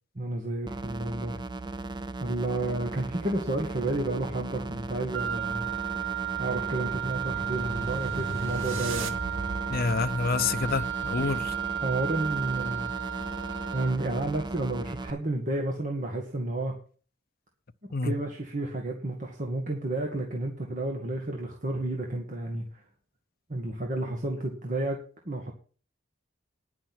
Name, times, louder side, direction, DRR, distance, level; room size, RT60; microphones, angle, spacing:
voice 1, 0.2-1.4 2.2-5.7 6.4-9.1 11.2-11.4 11.8-12.9 13.7-16.8 18.0-22.7 23.5-25.0 25.3-25.5, right 2 dB, 40° right, 1.8 m, -31 dB
sound 1, 0.7-15.1, right 2 dB, 20° right, 0.6 m, -37 dB
Wind instrument woodwind instrument, 5.1-14.0, right 10 dB, 65° right, 1.0 m, -33 dB
sound 2, 5.9-11.8, right 3 dB, 85° right, 1.5 m, -39 dB
voice 2, 9.7-11.5 17.9-18.2, left 4 dB, 50° left, 0.6 m, -28 dB
10.5 x 6.1 x 8.7 m
head